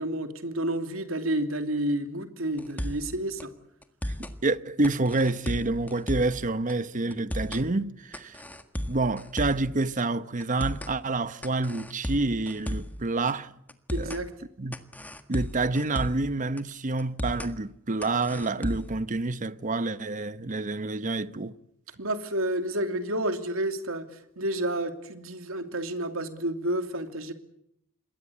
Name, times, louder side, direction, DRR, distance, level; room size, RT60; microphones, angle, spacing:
voice 1, 0.0-3.5 13.9-14.3 22.0-24.0 24.4-27.3, right 1 dB, 80° right, 2.9 m, -30 dB
sound 1, 2.6-3.1 3.4-3.5 3.8-4.3 4.8-6.4 6.7-6.8 7.1-7.7 8.1-9.7 10.0-10.1 10.4-10.9 11.4-13.0 13.3-13.4 13.7-14.2 14.7-16.3 16.6-16.7 17.0-17.5 18.0-19.0, equal, 10° left, 1.7 m, -34 dB
voice 2, 4.4-8.4 8.9-13.5 14.0-14.2 14.6-14.8 15.3-21.6, right 2 dB, 40° right, 1.0 m, -28 dB
27.5 x 22.0 x 8.5 m
head